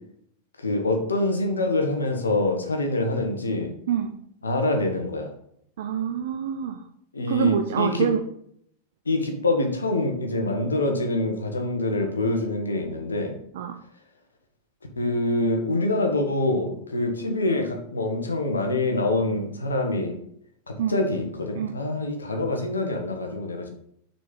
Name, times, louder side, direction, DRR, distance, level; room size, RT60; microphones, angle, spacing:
voice 1, 0.6-3.7 4.4-5.3 7.1-8.1 9.0-13.3 15.0-20.1 20.7-23.7, left 2 dB, 75° left, 3 dB, 1.2 m, -25 dB
voice 2, 5.8-6.8 7.3-8.2 13.5-13.7 20.8-20.9 21.5-21.7, right 9 dB, 55° right, 5 dB, 0.6 m, -25 dB
6.3 x 4.3 x 5.2 m, 0.70 s
figure-of-eight pair, 90°, 0 cm